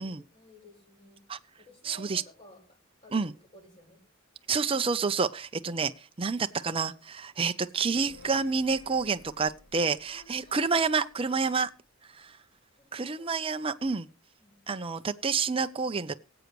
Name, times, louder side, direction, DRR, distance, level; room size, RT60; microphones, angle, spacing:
voice 1, 0.0-1.2 1.5-4.0 10.1-10.9 12.7-13.3 14.4-14.6, equal, 35° left, 7.7 m, -55 dB
voice 2, 1.8-2.2 3.1-3.3 4.5-11.7 12.1-12.4 12.9-14.1 14.7-16.1, right 5 dB, 25° right, 0.5 m, -29 dB
sound 1, 7.9-11.5 11.8-11.9, left 3 dB, 55° left, 4.6 m, -52 dB
24.0 x 8.0 x 3.1 m
head